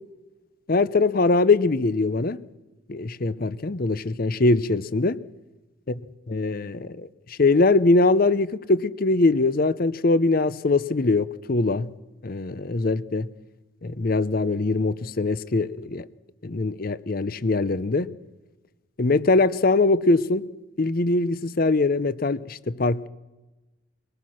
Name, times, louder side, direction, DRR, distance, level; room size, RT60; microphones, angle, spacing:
voice 1, 0.7-2.4 2.9-5.2 5.9-6.0 6.3-11.9 12.2-13.3 13.8-16.1 16.4-18.1 19.0-20.4 20.8-23.1, left 3 dB, 45° left, 0.6 m, -22 dB
23.5 x 18.5 x 6.3 m
head